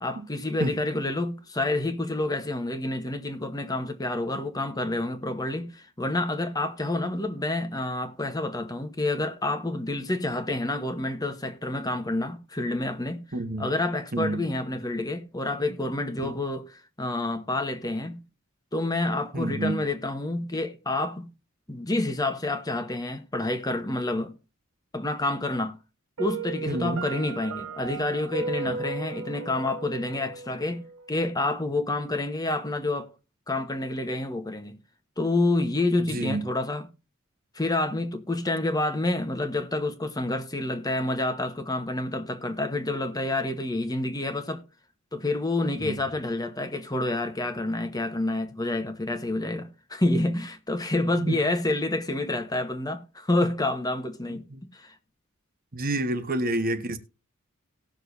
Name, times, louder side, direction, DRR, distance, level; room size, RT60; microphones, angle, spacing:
voice 1, 0.0-13.3 13.6-16.7 17.0-18.2 18.7-21.3 21.7-24.4 24.9-25.8 26.2-33.1 33.5-34.8 35.2-36.9 37.5-44.6 45.1-54.4 54.7-54.9, left 2 dB, 15° left, 1.2 m, -28 dB
voice 2, 13.3-13.7 14.1-14.5 16.2-16.3 19.3-19.8 26.7-27.0 36.0-36.4 45.8-45.9 51.2-51.4 54.3-54.6 55.7-57.0, right 2 dB, 40° right, 1.1 m, -29 dB
Piano, 26.2-31.1, right 4 dB, 75° right, 1.4 m, -36 dB
18.5 x 6.5 x 2.6 m
head